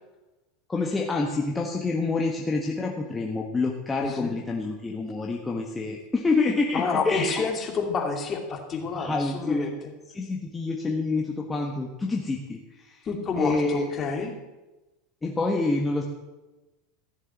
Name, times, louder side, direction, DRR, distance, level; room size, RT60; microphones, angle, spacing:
voice 1, 0.7-7.5 8.9-9.7 10.1-13.1 13.4-13.9 15.2-16.0, left 3 dB, 15° left, 0 dB, 1.4 m, -27 dB
voice 2, 4.0-4.4 6.7-9.7 13.1-14.3, left 5 dB, 30° left, 3 dB, 2.7 m, -29 dB
15.0 x 7.2 x 7.4 m, 1.1 s
supercardioid pair, 115°, 0 cm